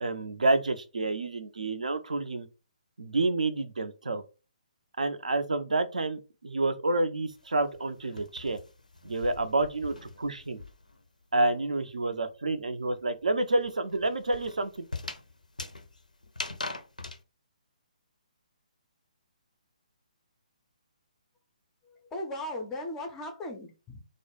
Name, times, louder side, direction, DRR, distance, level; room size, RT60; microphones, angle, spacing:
voice 1, 0.0-2.5 3.0-4.2 5.0-8.6 9.0-10.6 11.3-14.8, right 2 dB, 70° right, 0.4 m, -29 dB
sound 1, 7.3-11.1 11.3-17.2, left 2 dB, 80° left, 0.4 m, -42 dB
voice 2, 21.8-24.1, left 1 dB, 10° left, 0.4 m, -37 dB
2.2 x 2.0 x 3.0 m
figure-of-eight pair, 135°, 4 cm